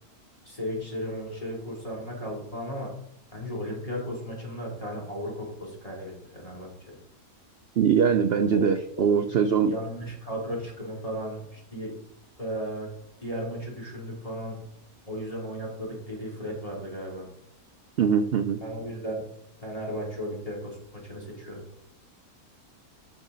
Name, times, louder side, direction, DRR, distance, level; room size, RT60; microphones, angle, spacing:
voice 1, 0.4-2.9 3.3-6.7 8.5-9.3 9.7-11.9 12.4-12.9 13.2-14.6 15.1-17.3 18.6-19.2 19.6-21.6, equal, 25° left, -4 dB, 3.0 m, -35 dB
voice 2, 7.8-9.7 18.0-18.6, right 7 dB, 65° right, 8 dB, 0.6 m, -22 dB
13.5 x 4.9 x 3.9 m, 0.72 s
omnidirectional pair, 1.6 m